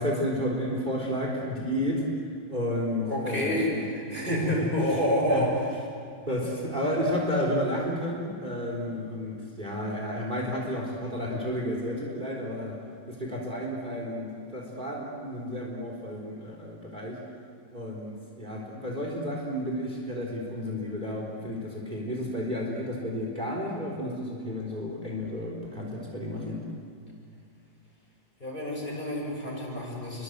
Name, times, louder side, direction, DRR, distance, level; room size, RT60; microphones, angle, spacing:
voice 1, 0.0-2.1 2.5-3.8 4.3-5.0 5.3-5.4 6.3-12.8 13.1-17.2 17.7-26.6, equal, 25° right, -1 dB, 3.9 m, -31 dB
voice 2, 3.1-5.7 28.4-30.2, equal, 25° left, -2 dB, 7.0 m, -29 dB
29.5 x 24.0 x 8.0 m, 2.3 s
omnidirectional pair, 2.1 m